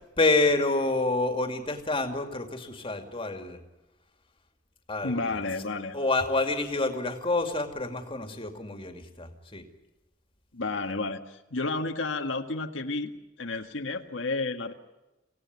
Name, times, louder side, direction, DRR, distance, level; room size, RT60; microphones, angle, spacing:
voice 1, 0.2-3.6 4.9-5.4 5.9-9.6, left 2 dB, 30° left, 6 dB, 2.4 m, -28 dB
voice 2, 5.0-6.0 10.5-13.1 13.4-14.7, left 3 dB, 85° left, 4 dB, 1.7 m, -31 dB
25.5 x 17.5 x 9.6 m, 1.0 s
head